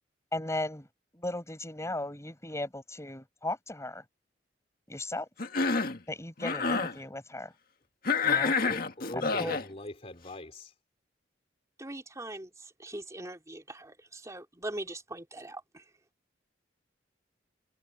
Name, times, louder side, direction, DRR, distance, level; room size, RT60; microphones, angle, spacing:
voice 1, 0.3-0.9 1.1-4.0 4.9-5.3 6.1-7.5 8.2-8.5 9.1-9.5, left 2 dB, 15° left, 5.8 m, -36 dB
Cough, 5.4-6.0 6.4-6.9 8.0-9.7, left 4 dB, 55° left, 1.7 m, -28 dB
voice 2, 8.7-10.7, left 1 dB, 35° left, 3.5 m, -42 dB
voice 3, 11.8-15.8, right 1 dB, 20° right, 2.8 m, -41 dB
head